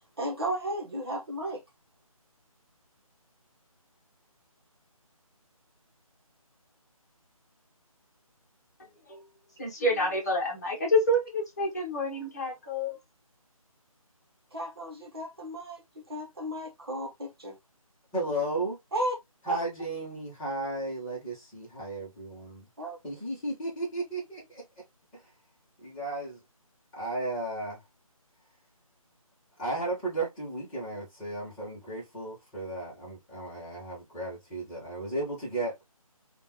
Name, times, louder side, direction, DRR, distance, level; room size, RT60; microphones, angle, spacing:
voice 1, 0.2-1.6 14.5-17.5 18.9-19.2 19.5-19.6 22.8-23.0, right 1 dB, 40° right, 1.3 m, -34 dB
voice 2, 9.6-13.0, left 1 dB, 30° left, 1.1 m, -28 dB
voice 3, 18.1-18.8 19.5-22.7 23.0-24.6 25.1-25.2 25.8-26.4 26.9-27.8 29.6-35.7, right 2 dB, 10° left, 1.3 m, -34 dB
5.2 x 2.6 x 3.0 m
figure-of-eight pair, 155°, 19 cm